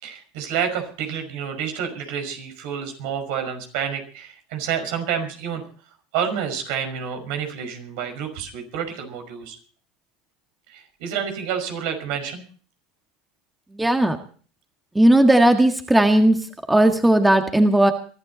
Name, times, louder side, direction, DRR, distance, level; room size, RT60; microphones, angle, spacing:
voice 1, 0.0-5.6 6.1-9.6 10.7-12.4, right 8 dB, 70° right, 6 dB, 5.5 m, -29 dB
voice 2, 13.7-14.2 15.0-16.4 16.7-17.9, right 1 dB, 10° right, 6 dB, 1.8 m, -16 dB
23.0 x 12.0 x 4.2 m, 0.42 s
supercardioid pair, 100°, 0 cm